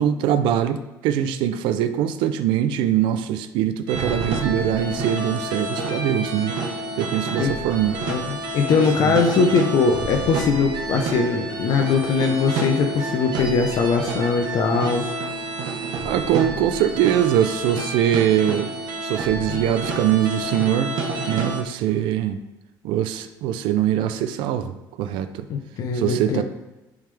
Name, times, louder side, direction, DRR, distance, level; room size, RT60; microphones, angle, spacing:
voice 1, 0.0-6.6 7.0-8.0 9.0-9.1 16.0-18.7 19.0-21.0 21.3-22.4 22.8-25.5 25.9-26.4, right 10 dB, 80° right, 10 dB, 0.5 m, -22 dB
sound 1, 3.9-21.6, right 2 dB, 60° right, 1.1 m, -29 dB
voice 2, 8.1-15.2 19.5-19.6 25.5-26.4, left 5 dB, 55° left, 3 dB, 0.7 m, -21 dB
10.5 x 3.6 x 3.4 m, 1.1 s
cardioid pair, 135°, 8 cm